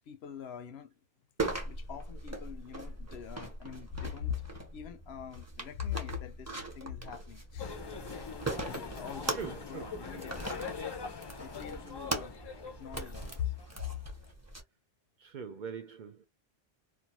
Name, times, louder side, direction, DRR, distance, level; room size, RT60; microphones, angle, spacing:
voice 1, 0.1-0.9 1.5-7.8 8.6-10.7 11.4-12.4 12.8-13.9, left 9 dB, 80° left, 0.9 m, -42 dB
sound 1, 1.4-14.6, right 2 dB, 20° right, 0.6 m, -40 dB
sound 2, 7.6-14.3, left 5 dB, 40° left, 0.3 m, -43 dB
voice 2, 9.2-10.2 15.2-16.3, right 6 dB, 60° right, 0.6 m, -43 dB
2.5 x 2.2 x 2.9 m
omnidirectional pair, 1.1 m